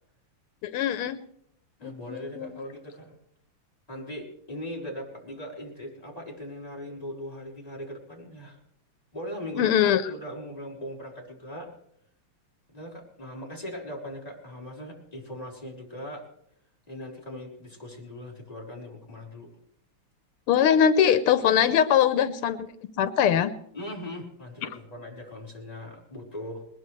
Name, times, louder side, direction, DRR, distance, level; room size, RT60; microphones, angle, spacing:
voice 1, 0.6-1.2 1.8-2.6 9.6-10.0 20.5-22.6 23.0-23.5 24.6-24.7, left 9 dB, 85° left, 11 dB, 1.7 m, -22 dB
voice 2, 1.8-3.1 3.9-8.6 9.1-11.7 12.7-16.3 16.9-19.5 23.7-26.6, left 1 dB, 15° left, -2 dB, 4.4 m, -39 dB
20.5 x 20.5 x 3.2 m, 0.73 s
omnidirectional pair, 2.4 m